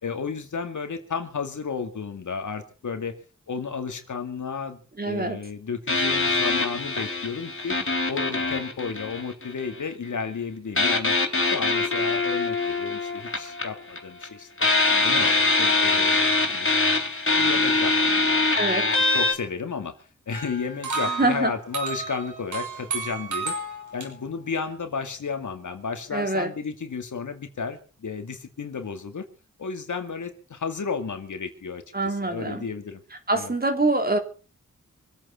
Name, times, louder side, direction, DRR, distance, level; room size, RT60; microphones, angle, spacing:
voice 1, 0.0-3.2 3.5-4.8 5.0-7.7 8.1-11.1 11.4-14.7 15.0-16.7 17.3-18.3 19.0-23.6 23.9-29.3 29.6-33.0 33.3-33.5, left 5 dB, 80° left, 6 dB, 2.4 m, -33 dB
voice 2, 5.0-5.4 18.6-18.9 21.0-21.5 26.1-26.5 31.9-32.6 33.3-34.2, right 2 dB, 30° right, 6 dB, 3.2 m, -25 dB
sound 1, 5.9-9.7 10.8-14.3 14.6-19.3, left 3 dB, 40° left, 3.7 m, -23 dB
sound 2, 20.3-24.1, right 4 dB, 80° right, 6.1 m, -32 dB
24.5 x 8.9 x 5.7 m, 0.38 s
cardioid pair, 60°, 30 cm